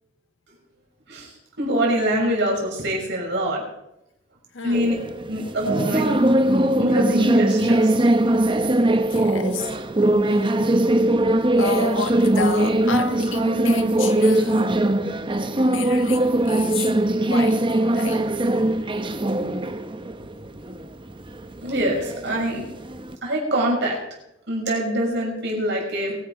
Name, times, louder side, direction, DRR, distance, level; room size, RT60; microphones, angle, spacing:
voice 1, 1.1-3.6 4.6-4.9 5.3-6.2 6.8-8.0 21.6-22.7 23.2-24.0 24.5-26.2, right 1 dB, 65° right, 6.2 m, -24 dB
voice 2, 4.5-5.0 9.1-9.7 10.2-10.5 11.6-14.8 15.6-16.9 17.2-18.3 20.2-20.4, left 4 dB, 85° left, 1.8 m, -31 dB
sound 1, 4.7-23.2, right 1 dB, 25° right, 0.9 m, -21 dB
22.5 x 11.0 x 4.7 m
head